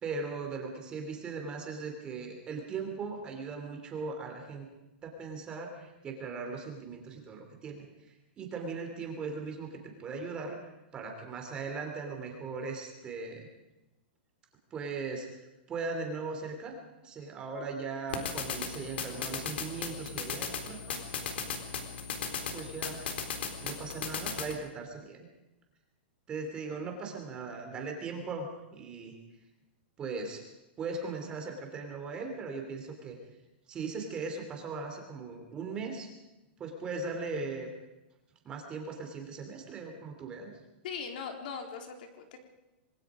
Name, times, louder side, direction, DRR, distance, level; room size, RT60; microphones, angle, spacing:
voice 1, 0.0-4.6 5.0-10.6 10.9-13.5 14.7-16.7 17.0-21.0 22.5-23.2 23.6-25.2 26.3-29.1 30.0-30.4 30.8-33.2 33.7-36.1 36.6-37.7 38.4-40.5, right 4 dB, 15° right, 3 dB, 3.3 m, -39 dB
sound 1, 18.1-24.6, left 6 dB, 75° left, 4.0 m, -37 dB
voice 2, 40.8-42.4, left 6 dB, 55° left, 4 dB, 3.7 m, -40 dB
28.0 x 21.0 x 5.1 m, 0.97 s
supercardioid pair, 170°, 6 cm